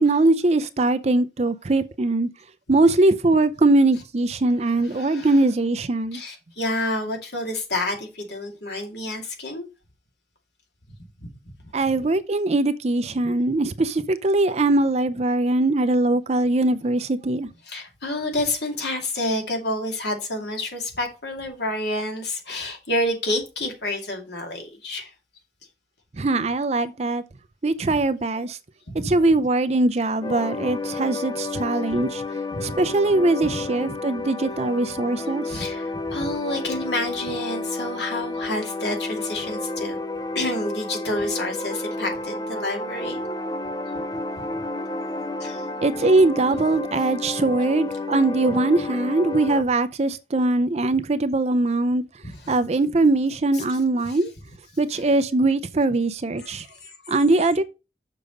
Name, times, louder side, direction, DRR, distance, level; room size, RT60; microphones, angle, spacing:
voice 1, 0.0-2.3 2.7-6.2 11.7-17.5 26.2-27.2 27.6-28.6 29.0-32.2 32.6-35.6 45.8-52.0 52.5-54.3 54.8-56.7 57.1-57.6, right 2 dB, 35° right, 0.5 m, -21 dB
voice 2, 4.6-5.5 6.1-9.7 11.2-11.3 17.6-25.1 27.9-28.0 28.9-29.2 31.9-32.8 33.4-33.6 34.5-34.6 35.5-40.0 40.3-43.2 44.4-44.5 45.4-45.7 52.2-52.6 53.5-54.5 54.9-55.1 56.4-57.5, left 1 dB, 70° left, 2.4 m, -29 dB
sound 1, 30.2-49.6, left 2 dB, 20° left, 0.4 m, -31 dB
6.8 x 5.0 x 5.3 m
head